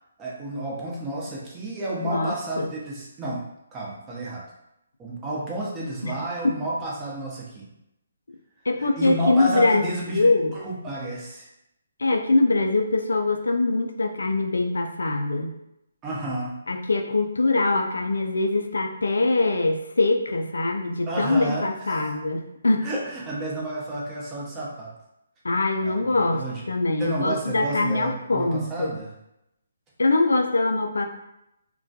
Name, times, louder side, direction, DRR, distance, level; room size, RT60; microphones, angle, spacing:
voice 1, 0.2-3.4 3.7-4.4 5.0-7.7 8.8-11.5 16.0-16.5 21.0-22.2 22.8-24.9 25.8-26.6 27.0-29.1, right 1 dB, 20° right, -5 dB, 0.7 m, -31 dB
voice 2, 2.0-2.7 6.0-6.2 8.7-9.9 10.1-10.5 12.0-15.5 16.7-22.9 25.4-28.9 30.0-31.0, left 2 dB, 80° left, 4 dB, 0.3 m, -23 dB
2.2 x 2.2 x 2.7 m, 0.84 s
figure-of-eight pair, 145°, 0 cm